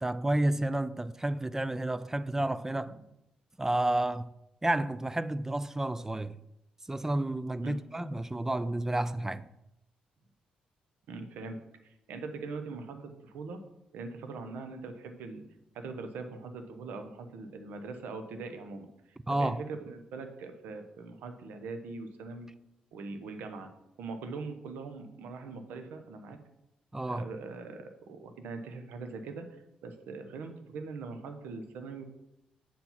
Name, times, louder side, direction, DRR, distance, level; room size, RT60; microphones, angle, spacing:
voice 1, 0.0-3.0 3.6-4.3 4.6-6.4 6.9-9.5 19.3-19.6 26.9-27.3, right 1 dB, 15° right, 0.4 m, -30 dB
voice 2, 11.1-11.6 11.8-13.6 13.9-15.4 15.7-22.5 22.9-23.7 24.0-26.4 27.1-29.6 29.8-32.0, right 4 dB, 80° right, 1.0 m, -42 dB
7.4 x 4.5 x 5.8 m
supercardioid pair, 65°, 3 cm